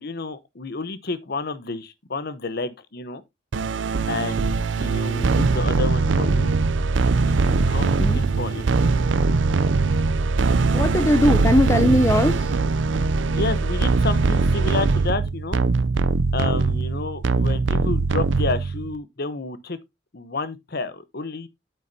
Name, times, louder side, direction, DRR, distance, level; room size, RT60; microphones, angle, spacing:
voice 1, 0.0-3.2 4.1-6.5 7.1-8.6 13.3-15.6 16.3-19.8 20.1-21.5, left 3 dB, 55° left, 1.0 m, -30 dB
sound 1, 3.5-18.9, right 4 dB, 75° right, 0.5 m, -21 dB
voice 2, 7.8-8.2 10.7-12.5, left 1 dB, 15° left, 0.6 m, -20 dB
8.9 x 8.0 x 2.7 m
head